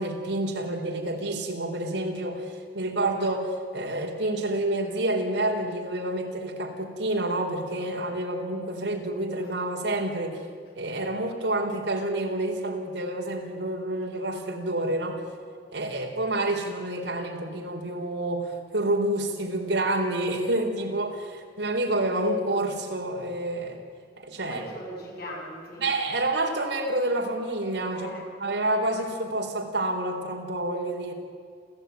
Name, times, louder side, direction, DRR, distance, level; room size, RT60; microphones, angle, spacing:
voice 1, 0.0-2.4 2.7-10.4 10.8-15.2 15.7-23.8 24.2-24.6 25.8-28.1 28.4-31.1, right 1 dB, 80° right, 1 dB, 3.9 m, -28 dB
voice 2, 24.4-25.8 27.9-28.3, equal, 60° left, -1 dB, 7.5 m, -39 dB
28.0 x 15.0 x 9.4 m, 2.2 s
head